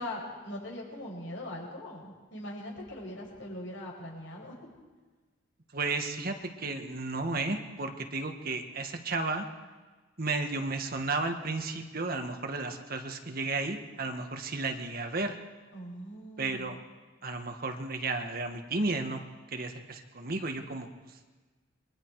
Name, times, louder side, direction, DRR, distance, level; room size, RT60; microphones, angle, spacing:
voice 1, 0.0-4.5 15.7-16.8, left 1 dB, 70° left, -2 dB, 7.7 m, -41 dB
voice 2, 5.7-9.5 10.2-15.4 16.4-16.8 17.2-19.2 19.5-20.9, right 3 dB, 50° right, 5 dB, 1.7 m, -33 dB
28.0 x 23.0 x 4.8 m, 1.3 s
head